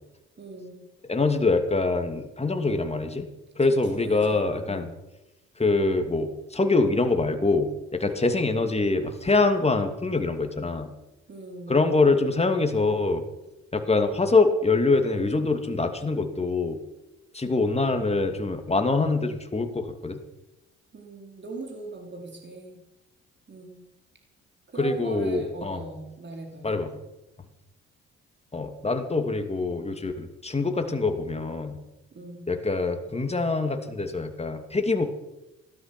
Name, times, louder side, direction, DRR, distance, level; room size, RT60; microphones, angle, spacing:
voice 1, 0.4-0.8 3.7-4.9 11.3-11.8 20.9-22.8 23.5-23.8 24.7-26.8 32.1-32.5, right 2 dB, 35° right, 1 dB, 4.6 m, -39 dB
voice 2, 1.1-3.3 3.6-4.9 5.6-10.9 11.7-13.2 13.7-16.8 17.3-20.2 24.8-25.8 26.6-26.9 28.5-31.8 32.5-35.0, left 3 dB, 20° left, 6 dB, 2.7 m, -24 dB
16.5 x 12.5 x 6.2 m, 0.94 s
supercardioid pair, 60°, 30 cm